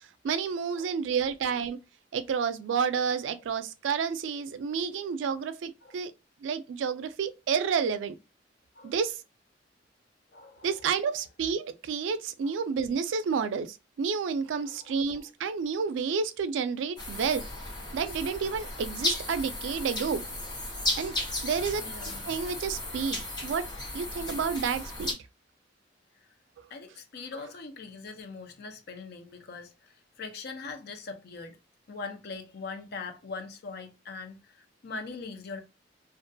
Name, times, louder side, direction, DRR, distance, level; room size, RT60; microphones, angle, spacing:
voice 1, 0.0-1.8 2.1-6.1 6.4-8.2 8.8-9.2 10.6-17.4 17.9-20.2 21.0-21.2 21.4-21.8 22.3-25.2, right 6 dB, 85° right, 0.3 m, -30 dB
voice 2, 10.3-11.0 12.4-12.6 14.6-15.2 20.4-20.5 21.8-22.3 26.7-31.6 31.9-35.6, left 4 dB, 60° left, 0.5 m, -42 dB
sound 1, 17.0-25.1, left 1 dB, 25° left, 0.8 m, -35 dB
2.4 x 2.2 x 2.6 m
head